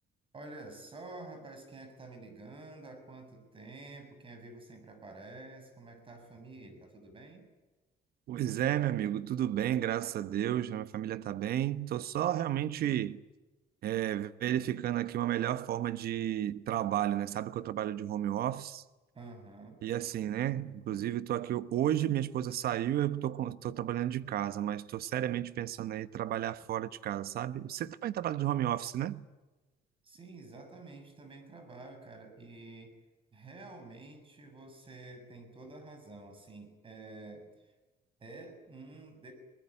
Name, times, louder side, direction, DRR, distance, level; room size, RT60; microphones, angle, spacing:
voice 1, 0.3-7.5 19.1-19.9 30.0-32.9 33.3-37.5 38.2-39.3, right 2 dB, 30° right, 7.2 m, -49 dB
voice 2, 8.3-13.2 13.8-18.8 19.8-29.2, right 12 dB, 65° right, 1.1 m, -32 dB
22.5 x 20.0 x 10.0 m
cardioid pair, 110°, 17 cm